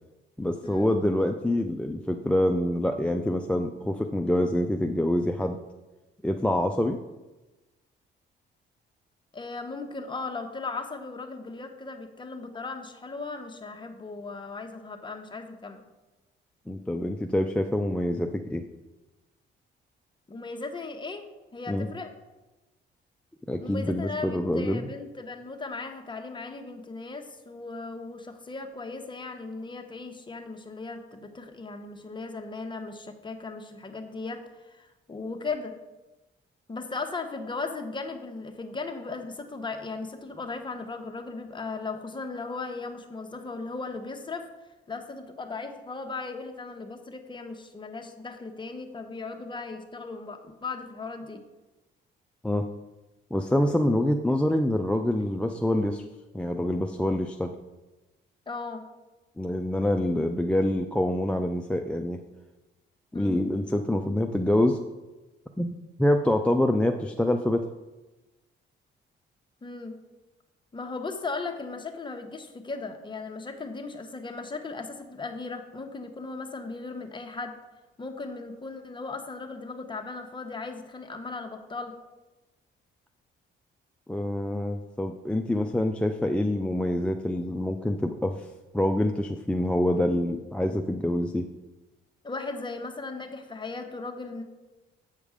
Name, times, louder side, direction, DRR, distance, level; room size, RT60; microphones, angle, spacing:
voice 1, 0.4-5.6 6.2-7.0 16.7-18.6 21.7-21.9 23.5-24.8 52.4-52.7 53.3-56.0 56.3-57.5 59.4-62.2 63.1-64.8 65.6-67.7 84.1-88.5 88.7-91.5, left 1 dB, 5° left, 5 dB, 0.4 m, -26 dB
voice 2, 9.3-15.8 20.3-21.2 21.5-22.1 23.6-35.7 36.7-44.5 44.9-51.4 58.5-58.8 63.1-63.4 69.6-69.9 70.7-77.5 78.0-81.9 92.2-94.4, left 3 dB, 25° left, 5 dB, 1.0 m, -37 dB
8.2 x 5.2 x 5.0 m, 1.1 s
cardioid pair, 90°, 20 cm